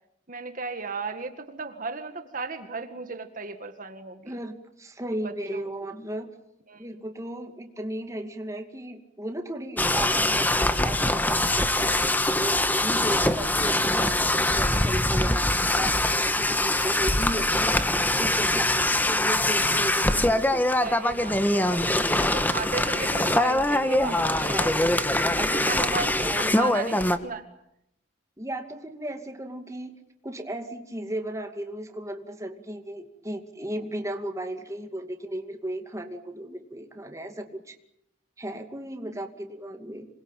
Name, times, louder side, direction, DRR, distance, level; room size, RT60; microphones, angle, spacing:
voice 1, 0.3-4.4 5.2-5.7 6.7-6.8 12.9-13.3 20.8-22.0 22.3-24.8 25.5-26.3 26.6-27.4, right 3 dB, 45° right, 7 dB, 1.9 m, -35 dB
voice 2, 4.3-6.3 6.8-10.5 10.8-12.0 12.4-15.5 15.7-17.9 18.2-20.6 21.5-22.4 24.4-25.0 25.4-25.9 26.2-26.8 28.4-29.9 30.2-37.7 38.4-40.1, right 1 dB, 15° right, 5 dB, 2.4 m, -35 dB
sound 1, 9.8-27.2, left 1 dB, 10° left, 1.4 m, -23 dB
27.0 x 21.5 x 9.0 m, 0.80 s
head